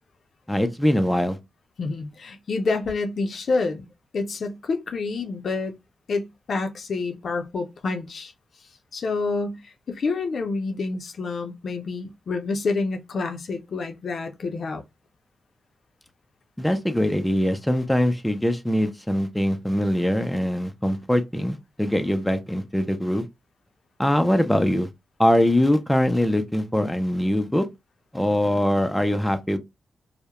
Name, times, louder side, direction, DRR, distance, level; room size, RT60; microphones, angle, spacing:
voice 1, 0.5-1.4 16.6-23.3 24.0-24.9 25.2-27.7 28.1-29.6, equal, 5° left, 0.4 m, -22 dB
voice 2, 1.8-3.9 4.1-5.7 6.1-8.3 8.9-14.8, left 3 dB, 65° left, 0.5 m, -28 dB
2.2 x 2.0 x 2.8 m
cardioid pair, 85°, 0 cm